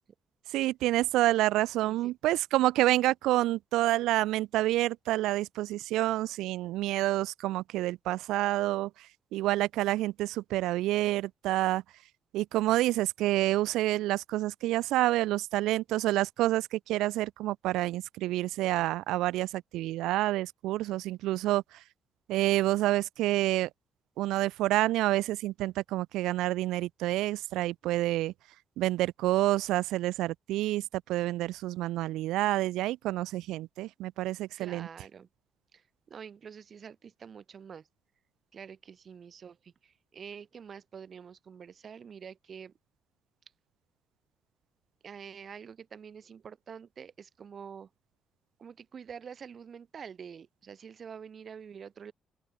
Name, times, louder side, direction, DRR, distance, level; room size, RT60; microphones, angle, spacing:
voice 1, 0.5-8.9 9.3-11.8 12.3-21.6 22.3-23.7 24.2-28.3 28.8-34.9, right 16 dB, 60° right, 0.4 m, -28 dB
voice 2, 1.8-2.1 34.6-35.3 35.7-37.9 38.5-42.7 45.0-47.9 48.6-52.1, right 7 dB, 45° right, 6.4 m, -47 dB
open air
figure-of-eight pair, 40°, 0 cm